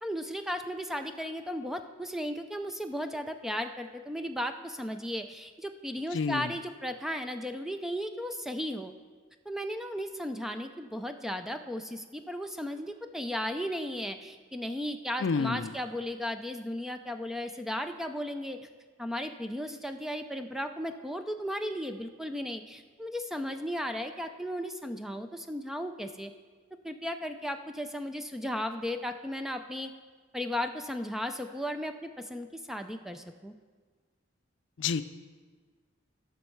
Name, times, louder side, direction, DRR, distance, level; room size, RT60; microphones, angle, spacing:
voice 1, 0.0-8.9 9.5-18.6 19.0-26.3 26.8-29.9 30.3-33.5, equal, ahead, 7 dB, 0.4 m, -35 dB
voice 2, 6.1-6.5 15.2-15.7 34.8-35.0, left 5 dB, 70° left, 12 dB, 0.4 m, -29 dB
16.5 x 6.4 x 4.5 m, 1.5 s
head